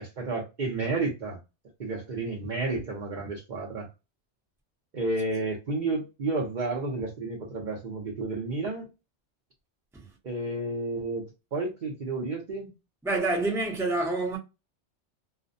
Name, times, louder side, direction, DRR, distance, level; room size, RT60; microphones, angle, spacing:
voice 1, 0.0-1.4 1.8-3.9 4.9-8.9 10.2-12.7, right 3 dB, 45° right, 0.7 m, -31 dB
voice 2, 13.0-14.4, right 2 dB, 5° right, 0.6 m, -27 dB
2.4 x 2.1 x 2.5 m
omnidirectional pair, 1.2 m